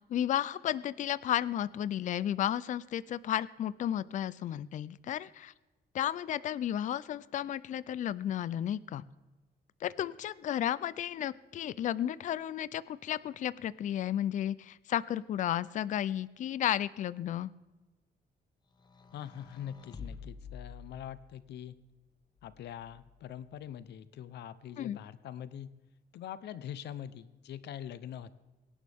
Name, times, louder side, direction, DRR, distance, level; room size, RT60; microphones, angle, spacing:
voice 1, 0.1-5.5 5.9-9.0 9.8-17.5 24.8-25.0, left 11 dB, 45° left, 18 dB, 0.4 m, -33 dB
sound 1, 18.7-21.5 22.4-23.3, left 5 dB, 25° left, 1.1 m, -49 dB
voice 2, 19.1-21.7 22.4-25.7 26.1-28.3, left 10 dB, 80° left, 14 dB, 0.8 m, -43 dB
24.5 x 11.0 x 3.5 m, 1.1 s
cardioid pair, 180°, 17 cm